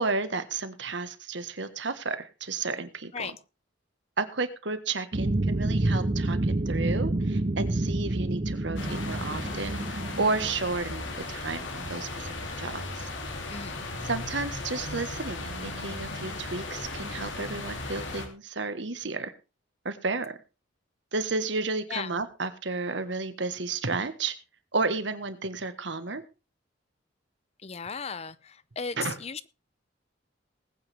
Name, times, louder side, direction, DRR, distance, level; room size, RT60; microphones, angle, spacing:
voice 1, 0.0-3.4 4.2-13.1 14.0-19.3 19.8-20.4 21.1-24.3 24.7-26.2 29.0-29.2, right 3 dB, 70° right, 11 dB, 1.5 m, -32 dB
sound 1, 5.1-10.7, right 2 dB, 40° right, 0.7 m, -28 dB
sound 2, 8.8-18.3, left 2 dB, 80° left, 3.1 m, -36 dB
voice 2, 13.5-13.8 21.9-22.1 27.6-29.5, left 5 dB, 35° left, 17 dB, 0.6 m, -36 dB
20.0 x 9.0 x 3.5 m, 0.30 s
head